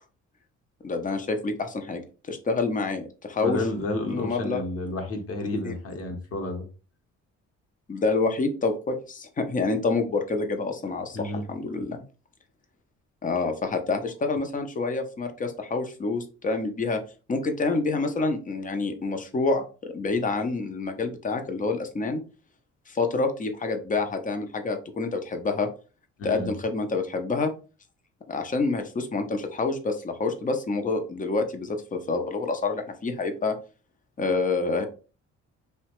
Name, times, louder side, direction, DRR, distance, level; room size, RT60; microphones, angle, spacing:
voice 1, 0.8-2.0 2.3-3.6 4.1-4.6 5.6-5.8 7.9-12.0 13.2-17.0 17.3-22.2 22.9-25.7 26.2-27.5 28.3-33.6 34.2-34.9, left 3 dB, 25° left, 6 dB, 0.6 m, -27 dB
voice 2, 3.4-6.6 11.1-11.4 26.2-26.5, left 1 dB, 50° left, 4 dB, 0.9 m, -31 dB
2.8 x 2.1 x 2.9 m, 0.35 s
cardioid pair, 90°, 30 cm